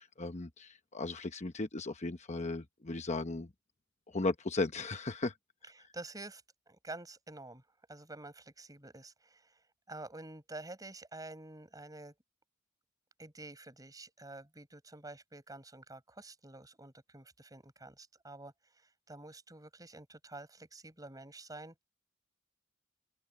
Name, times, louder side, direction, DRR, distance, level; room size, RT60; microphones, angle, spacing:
voice 1, 0.0-3.5 4.1-5.3, left 3 dB, 35° left, 1.0 m, -36 dB
voice 2, 5.7-6.4 6.7-7.6 7.9-12.2 13.2-21.8, right 2 dB, 20° right, 7.2 m, -49 dB
head